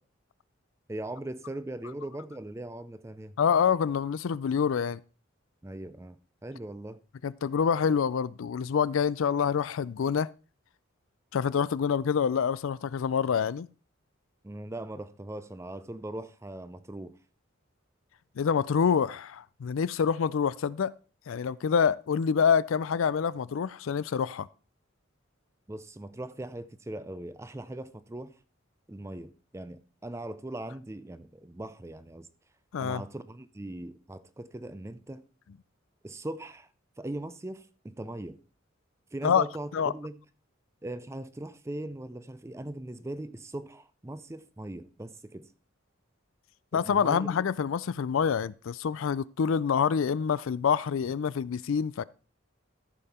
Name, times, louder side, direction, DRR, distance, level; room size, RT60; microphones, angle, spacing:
voice 1, 0.9-3.3 5.6-7.0 14.4-17.1 25.7-28.3 28.9-32.3 32.8-35.3 36.0-36.7 37.0-38.4 39.1-40.2 40.8-45.5 46.7-47.3, right 1 dB, 15° right, 0.5 m, -40 dB
voice 2, 3.4-5.0 7.2-10.3 11.3-13.7 18.4-20.9 21.3-24.5 32.7-33.0 39.2-39.5 39.7-39.9 46.7-52.0, left 7 dB, 75° left, 0.4 m, -26 dB
13.5 x 5.5 x 4.3 m
head